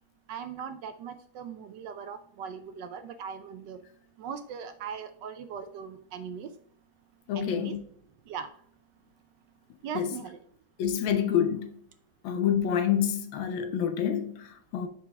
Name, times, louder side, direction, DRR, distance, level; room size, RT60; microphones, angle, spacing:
voice 1, 0.3-3.8 4.2-6.5 7.3-7.8 8.3-8.5 9.8-10.4, right 7 dB, 75° right, 1.1 m, -39 dB
voice 2, 7.3-7.8 9.9-10.1 10.8-11.7 12.2-14.9, left 9 dB, 75° left, 1.5 m, -27 dB
6.1 x 4.9 x 3.3 m
omnidirectional pair, 2.2 m